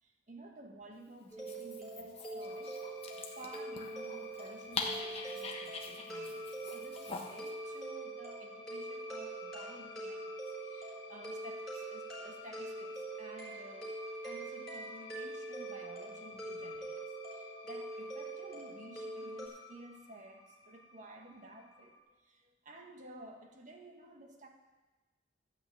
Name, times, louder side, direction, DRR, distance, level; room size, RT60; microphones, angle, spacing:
voice 1, 0.0-2.8 3.4-14.0 14.2-24.5, right 2 dB, 40° right, 2 dB, 1.5 m, -53 dB
Dog, 1.3-7.5, left 4 dB, 30° left, 1.2 m, -44 dB
sound 1, 1.3-19.5, right 2 dB, 5° left, 4.6 m, -44 dB
sound 2, 2.4-22.0, left 3 dB, 85° left, 1.7 m, -54 dB
13.0 x 6.0 x 8.3 m, 1.2 s
head